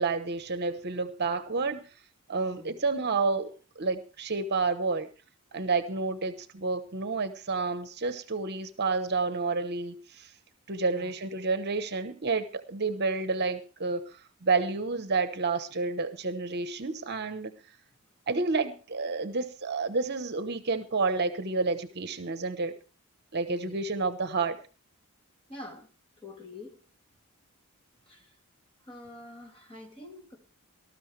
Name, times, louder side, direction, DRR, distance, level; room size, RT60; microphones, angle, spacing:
voice 1, 0.0-1.8 2.3-5.1 5.5-10.3 10.7-17.5 18.3-22.7 23.3-24.6, right 4 dB, 50° right, 11 dB, 1.0 m, -30 dB
voice 2, 2.4-2.7 10.8-11.2 23.5-23.7 25.5-25.9 26.2-26.8 28.1-28.3 28.9-30.4, left 2 dB, 25° left, 3 dB, 2.7 m, -46 dB
19.0 x 13.0 x 3.3 m, 0.35 s
head